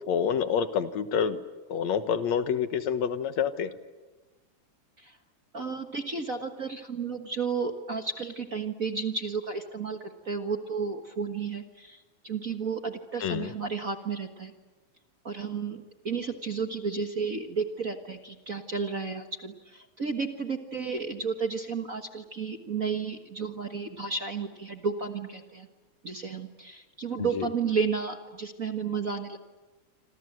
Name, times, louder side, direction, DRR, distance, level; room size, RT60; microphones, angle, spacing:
voice 1, 0.1-1.4 1.7-3.7 13.2-13.5 27.4-27.5, left 7 dB, 70° left, 11 dB, 2.4 m, -27 dB
voice 2, 5.5-14.5 15.2-25.7 26.0-29.4, right 5 dB, 40° right, 6 dB, 1.2 m, -32 dB
27.0 x 27.0 x 7.9 m, 1.2 s
omnidirectional pair, 3.4 m